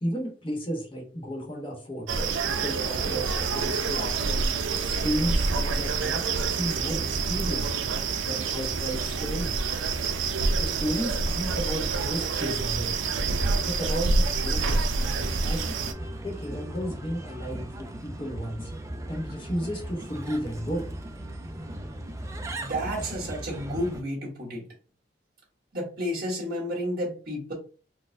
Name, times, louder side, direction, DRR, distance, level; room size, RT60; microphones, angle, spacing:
voice 1, 0.0-4.5 4.8-6.2 6.5-7.7 8.2-9.5 10.5-12.9 13.6-15.9 16.2-18.7 19.1-20.9, equal, 30° left, 0 dB, 0.9 m, -33 dB
sound 1, 2.1-15.9, right 4 dB, 90° right, 0.4 m, -27 dB
Bird, 15.0-24.0, right 1 dB, 15° right, 0.3 m, -38 dB
voice 2, 22.6-24.6 25.7-27.5, equal, 55° right, -4 dB, 1.4 m, -31 dB
4.2 x 2.1 x 2.5 m, 0.37 s
head